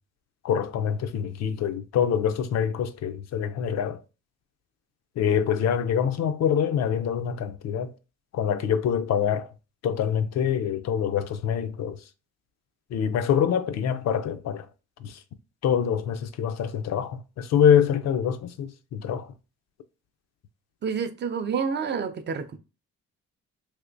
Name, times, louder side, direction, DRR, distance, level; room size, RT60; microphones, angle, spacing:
voice 1, 0.4-4.0 5.2-7.9 8.3-9.5 9.8-12.0 12.9-14.7 15.0-15.2 15.6-19.3, left 8 dB, 60° left, 0.5 m, -25 dB
voice 2, 20.8-22.6, right 6 dB, 35° right, 0.4 m, -28 dB
3.3 x 2.9 x 2.6 m
cardioid pair, 90°, 30 cm